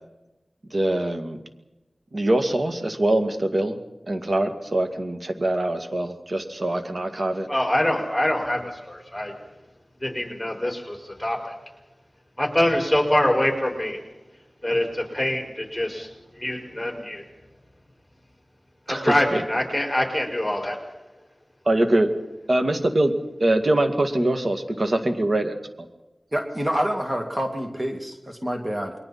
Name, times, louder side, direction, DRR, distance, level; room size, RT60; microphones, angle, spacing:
voice 1, 0.7-1.4 2.1-3.8 4.1-7.5 18.9-19.4 21.7-22.1 22.5-23.1 23.4-25.6, right 1 dB, 60° right, 6 dB, 2.1 m, -23 dB
voice 2, 7.5-9.3 10.0-11.5 12.4-14.0 14.6-17.2 18.9-20.8, left 1 dB, 10° left, 1 dB, 5.3 m, -24 dB
voice 3, 26.3-28.9, equal, 30° right, 2 dB, 2.5 m, -27 dB
29.0 x 22.5 x 4.3 m, 1.0 s
wide cardioid pair, 45°, 0 cm